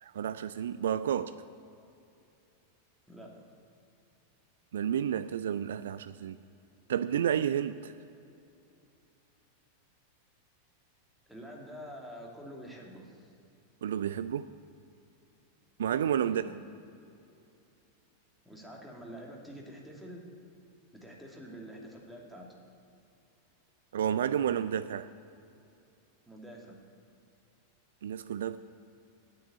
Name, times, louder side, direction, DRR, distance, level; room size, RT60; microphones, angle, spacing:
voice 1, 0.0-1.3 4.7-6.4 6.9-7.9 13.8-14.5 15.8-16.4 23.9-25.1 28.0-28.6, right 9 dB, 60° right, 14 dB, 0.3 m, -30 dB
voice 2, 3.1-3.5 11.3-13.3 16.3-16.6 18.4-20.2 20.9-22.5 26.3-26.8, equal, 5° right, -2 dB, 2.5 m, -47 dB
9.8 x 9.5 x 8.4 m, 2.6 s
figure-of-eight pair, 90°, 0 cm